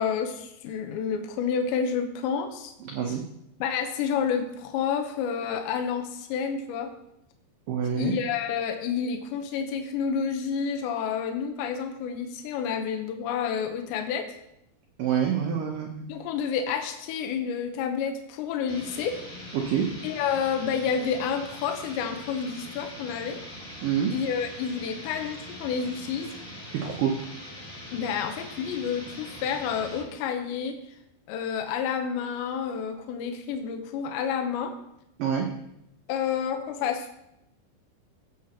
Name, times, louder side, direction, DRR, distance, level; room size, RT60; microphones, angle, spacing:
voice 1, 0.0-2.7 3.6-6.9 8.0-14.3 16.1-19.2 20.0-23.4 24.1-26.3 27.9-30.8 31.3-34.7 36.1-37.2, left 7 dB, 75° left, 5 dB, 3.1 m, -29 dB
voice 2, 2.9-3.2 7.7-8.1 15.0-16.1 19.7-19.9 23.8-24.1 26.8-27.1 35.2-35.5, right 8 dB, 85° right, 1 dB, 1.9 m, -26 dB
sound 1, 18.7-30.1, left 1 dB, 15° left, 2.8 m, -42 dB
16.5 x 8.6 x 3.0 m, 0.82 s
omnidirectional pair, 5.4 m